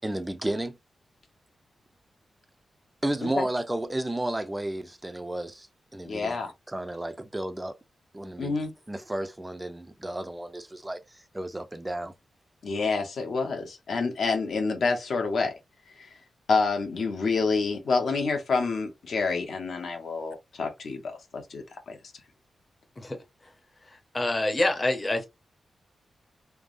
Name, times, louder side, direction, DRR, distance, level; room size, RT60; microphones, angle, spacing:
voice 1, 0.0-0.8 3.0-5.7 5.9-6.4 6.7-7.8 8.1-8.6 8.9-11.0 11.3-12.1, right 1 dB, 10° right, 0.3 m, -32 dB
voice 2, 6.0-6.5 8.4-8.7 12.6-15.5 16.0-16.1 16.5-22.0, left 4 dB, 65° left, 0.8 m, -28 dB
voice 3, 24.1-25.3, left 1 dB, 20° left, 0.7 m, -25 dB
3.3 x 2.0 x 2.5 m
wide cardioid pair, 145°, 0 cm